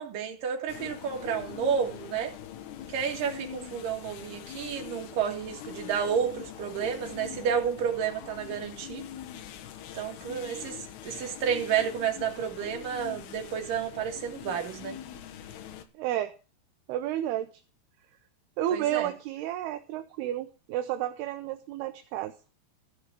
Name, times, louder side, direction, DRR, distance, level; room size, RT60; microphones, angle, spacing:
voice 1, 0.0-2.3 2.9-9.0 9.9-10.8 11.0-14.9 18.7-19.1, right 7 dB, 55° right, 2 dB, 3.5 m, -31 dB
sound 1, 0.7-15.8, left 10 dB, 75° left, 3.2 m, -43 dB
voice 2, 15.9-16.3 16.9-17.5 18.6-22.3, right 12 dB, 75° right, 8 dB, 2.7 m, -31 dB
15.0 x 5.6 x 8.2 m, 0.35 s
omnidirectional pair, 4.9 m